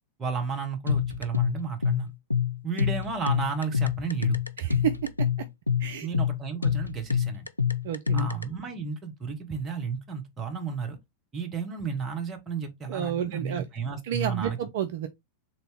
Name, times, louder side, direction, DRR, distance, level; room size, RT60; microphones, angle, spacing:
voice 1, 0.2-2.1 2.6-4.4 6.0-7.5 8.1-11.0 11.3-14.6, right 5 dB, 20° right, 1.1 m, -33 dB
sound 1, 0.9-8.4, left 7 dB, 85° left, 0.3 m, -26 dB
voice 2, 4.6-5.3 5.8-6.1 7.8-8.3 12.9-13.7 14.0-15.1, right 10 dB, 55° right, 0.4 m, -30 dB
3.6 x 2.9 x 3.3 m
figure-of-eight pair, 90°, 0 cm